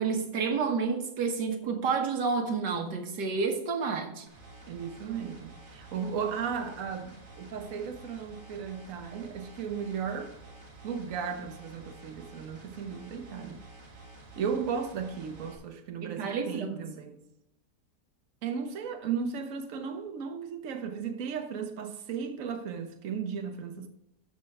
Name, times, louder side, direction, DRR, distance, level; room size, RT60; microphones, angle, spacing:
voice 1, 0.0-4.3 16.0-16.8, right 5 dB, 75° right, 1.9 m, -30 dB
sound 1, 4.3-15.5, right 2 dB, 30° right, 1.5 m, -50 dB
voice 2, 4.7-10.3 10.8-13.6 14.4-17.2 18.4-23.9, right 6 dB, 55° right, 1.3 m, -35 dB
12.5 x 4.5 x 4.7 m
omnidirectional pair, 1.8 m